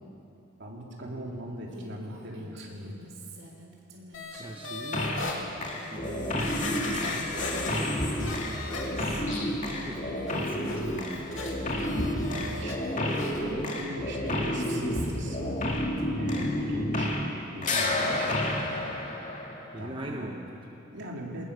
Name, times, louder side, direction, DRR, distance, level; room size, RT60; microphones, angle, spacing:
voice 1, 0.6-3.0 11.9-13.0 13.3-15.6 16.2-18.6 19.8-20.3 20.9-21.4, equal, 60° right, -1 dB, 3.4 m, -40 dB
Female speech woman speaking, 1.7-11.8 12.1-16.0, right 1 dB, 80° right, 3.6 m, -49 dB
sound 1, 4.1-5.4 5.9-6.0 6.4-9.3 9.7-12.8 13.1-13.4 13.8-13.9, left 3 dB, 70° left, 2.7 m, -39 dB
voice 2, 4.4-11.4 19.7-20.8, right 1 dB, 25° right, 1 dB, 1.1 m, -42 dB
Robotic loop, 4.9-5.3 5.6-17.4 17.6-19.8, left 1 dB, 40° left, 2.4 m, -30 dB
23.0 x 19.5 x 6.9 m, 3.0 s
head